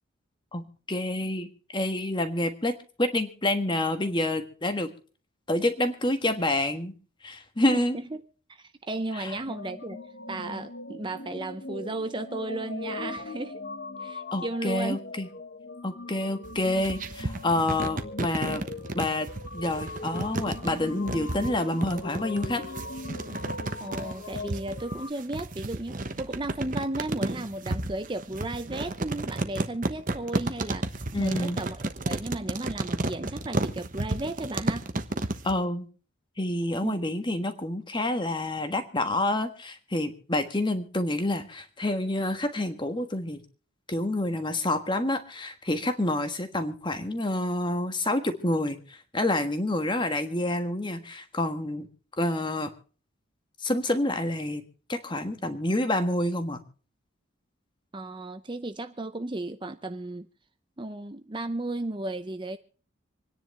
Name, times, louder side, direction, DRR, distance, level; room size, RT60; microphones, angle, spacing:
voice 1, 0.5-4.9 5.5-6.9 7.2-8.0 9.2-9.3 14.3-15.3 15.8-18.6 18.9-19.3 19.5-22.6 31.1-31.6 35.4-35.9 36.4-43.4 43.9-51.9 52.2-52.7 53.6-54.6 54.9-56.6, left 1 dB, 20° left, 8 dB, 1.5 m, -28 dB
voice 2, 7.7-8.2 8.5-10.0 10.3-13.6 14.0-15.0 23.8-34.9 36.8-37.0 57.9-60.3 60.8-62.6, right 2 dB, 25° right, 9 dB, 0.6 m, -34 dB
sound 1, 9.5-25.1, left 2 dB, 50° left, 1.1 m, -40 dB
sound 2, 16.4-35.6, right 2 dB, 40° right, 1.1 m, -32 dB
27.0 x 10.0 x 3.2 m, 0.40 s
head